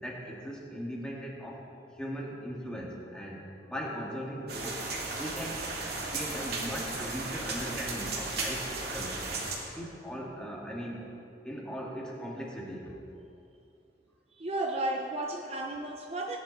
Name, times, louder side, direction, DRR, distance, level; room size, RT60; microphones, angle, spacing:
voice 1, 0.0-1.7 2.0-3.4 3.7-4.9 5.2-5.7 6.0-9.1 9.8-11.0 11.4-12.9, equal, 5° left, -3 dB, 2.0 m, -39 dB
sound 1, 4.5-9.6, right 3 dB, 55° right, 2.5 m, -35 dB
voice 2, 14.3-16.4, right 2 dB, 35° right, 2 dB, 0.7 m, -33 dB
18.5 x 10.5 x 4.2 m, 2.7 s
head